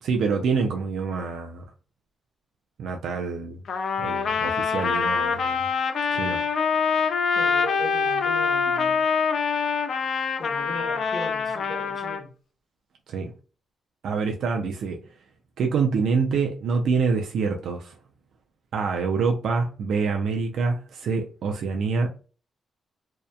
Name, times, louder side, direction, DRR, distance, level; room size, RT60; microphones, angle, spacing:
voice 1, 0.0-1.6 2.8-3.6 4.0-5.6 6.1-6.4 13.1-13.3 14.0-15.0 15.6-18.0 18.7-22.1, right 5 dB, 70° right, 0.3 m, -26 dB
Trumpet, 3.7-12.2, left 5 dB, 55° left, 0.3 m, -25 dB
voice 2, 7.3-9.0 10.4-12.3, left 2 dB, 30° left, 0.7 m, -38 dB
2.7 x 2.1 x 2.2 m
cardioid pair, 135°, 0 cm